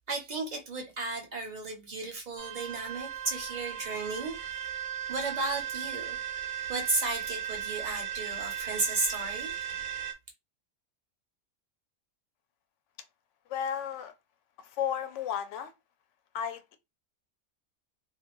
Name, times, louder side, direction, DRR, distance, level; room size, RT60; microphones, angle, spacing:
voice 1, 0.1-4.4 5.1-9.5, right 3 dB, 45° right, 0.6 m, -34 dB
sound 1, 2.4-10.1, right 10 dB, 75° right, 0.9 m, -37 dB
voice 2, 13.5-14.1 14.6-15.7 16.3-16.8, left 8 dB, 70° left, 0.9 m, -33 dB
2.5 x 2.2 x 2.9 m
omnidirectional pair, 1.4 m